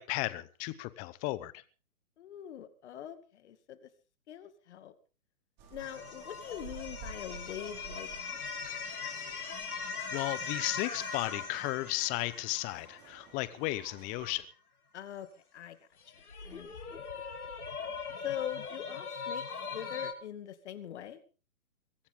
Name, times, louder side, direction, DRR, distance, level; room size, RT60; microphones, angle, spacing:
voice 1, 0.0-1.6 10.1-14.5, left 19 dB, 20° left, 16 dB, 0.8 m, -34 dB
voice 2, 2.2-3.9 4.3-4.9 5.7-8.1 8.5-8.6 14.9-15.3 15.5-15.9 16.2-17.0 18.2-19.4 19.7-21.2, left 10 dB, 50° left, 10 dB, 2.4 m, -42 dB
sound 1, 5.6-14.4, right 4 dB, 25° right, 5.8 m, -53 dB
sound 2, 5.8-13.7 16.1-20.1, left 5 dB, 90° left, 4.5 m, -40 dB
23.0 x 14.0 x 3.8 m, 0.37 s
hypercardioid pair, 140°, 43 cm